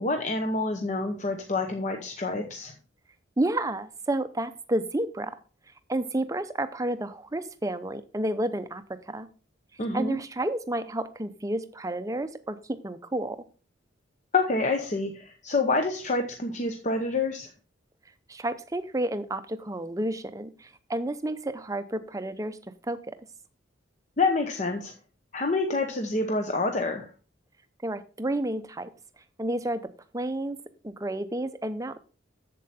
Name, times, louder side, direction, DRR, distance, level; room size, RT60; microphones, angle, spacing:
voice 1, 0.0-2.7 9.8-10.2 14.3-17.5 24.2-24.9 25.3-27.1, left 3 dB, 35° left, 4 dB, 0.8 m, -27 dB
voice 2, 3.4-5.4 5.9-9.3 9.9-13.4 18.3-22.6 22.8-23.1 27.8-28.9 29.4-29.8 30.1-30.6 30.8-32.0, right 1 dB, 15° right, 11 dB, 0.6 m, -30 dB
7.7 x 7.6 x 4.1 m, 0.37 s
head